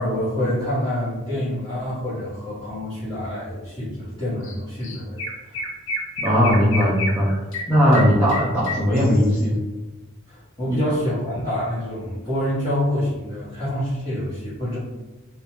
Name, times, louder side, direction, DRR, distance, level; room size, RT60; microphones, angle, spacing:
voice 1, 0.0-5.6 10.3-14.8, left 1 dB, 20° left, -14 dB, 0.8 m, -27 dB
Chirp tweet, 4.4-4.6 4.8-9.4, left 2 dB, 60° left, 0.4 m, -30 dB
voice 2, 6.2-7.3 7.7-9.6 10.7-10.8, equal, 10° right, -9 dB, 0.4 m, -18 dB
2.4 x 2.1 x 2.8 m, 1.1 s
head